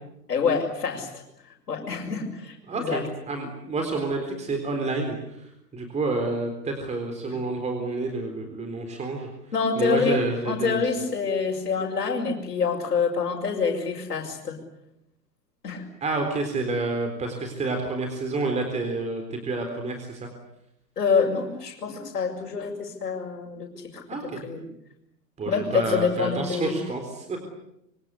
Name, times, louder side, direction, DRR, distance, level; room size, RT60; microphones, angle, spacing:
voice 1, 0.3-1.2 1.7-3.0 7.3-7.4 9.5-10.2 10.5-14.6 15.6-15.8 21.0-24.0 24.4-24.6 25.5-26.8, left 5 dB, 65° left, -3 dB, 5.8 m, -26 dB
voice 2, 2.7-5.4 5.7-9.3 9.8-10.8 16.0-20.3 24.1-24.4 25.4-27.5, right 3 dB, 15° right, 4 dB, 4.0 m, -29 dB
27.0 x 25.0 x 8.3 m, 0.78 s
figure-of-eight pair, 110°, 49 cm